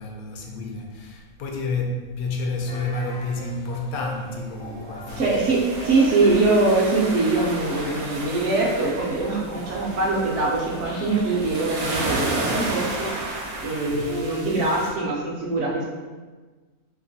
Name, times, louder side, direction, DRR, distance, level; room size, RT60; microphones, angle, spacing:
voice 1, 0.0-5.4 13.8-14.2, left 3 dB, 80° left, 1 dB, 1.0 m, -30 dB
sound 1, 2.6-11.4, right 2 dB, 60° left, 0.9 m, -41 dB
sound 2, 2.7-3.7 4.5-10.5 10.8-12.2 14.1-15.0, equal, 40° left, 0.3 m, -42 dB
sound 3, 5.1-14.9, right 2 dB, 80° right, 1.2 m, -32 dB
voice 2, 5.2-15.8, right 3 dB, 65° right, -4 dB, 0.9 m, -23 dB
3.1 x 2.9 x 2.6 m, 1.3 s
omnidirectional pair, 1.5 m